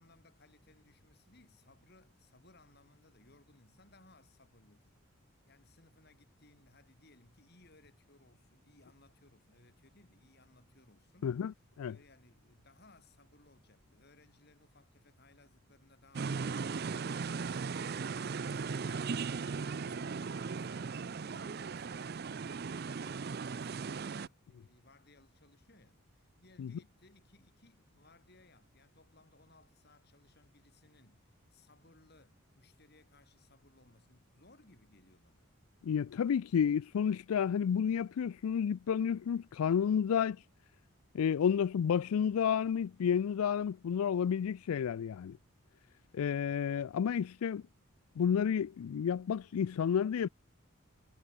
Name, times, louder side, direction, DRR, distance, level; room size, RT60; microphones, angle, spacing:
voice 1, 0.0-5.0 5.4-11.4 11.9-22.5 22.8-35.5 41.4-41.6, left 2 dB, 45° left, 3.1 m, -64 dB
voice 2, 11.2-12.0 26.6-26.7 35.8-40.4 41.1-45.4 46.1-47.6 48.2-50.3, left 7 dB, 80° left, 0.3 m, -31 dB
sound 1, 16.1-24.3, right 5 dB, 45° right, 0.4 m, -37 dB
head